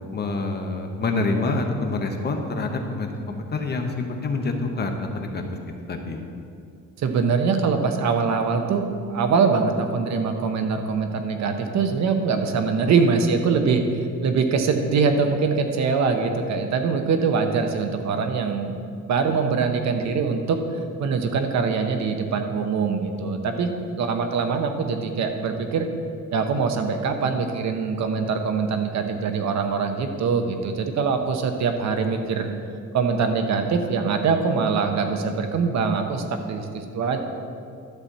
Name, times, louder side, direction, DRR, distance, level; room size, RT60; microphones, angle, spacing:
voice 1, 0.1-5.4 5.9-6.2, left 3 dB, 30° left, 4 dB, 0.8 m, -27 dB
voice 2, 7.0-18.7 19.0-23.7 24.0-25.9 26.3-32.5 32.9-37.2, right 5 dB, 55° right, 5 dB, 0.9 m, -23 dB
11.5 x 4.2 x 7.2 m, 2.4 s
cardioid pair, 155°, 32 cm